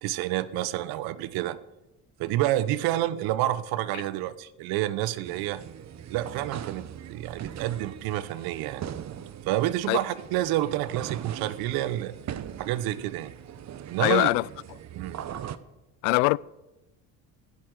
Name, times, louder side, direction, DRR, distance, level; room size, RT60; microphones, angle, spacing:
voice 1, 0.0-1.6 2.2-5.6 6.1-8.8 9.4-12.1 12.6-13.3 13.9-14.3 15.0-15.2, right 14 dB, 70° right, 1.0 m, -29 dB
sound 1, 5.2-15.6, right 9 dB, 45° right, 1.0 m, -40 dB
voice 2, 14.0-14.4 16.0-16.4, left 26 dB, 75° left, 0.5 m, -22 dB
15.0 x 10.5 x 6.7 m
hypercardioid pair, 65°, 38 cm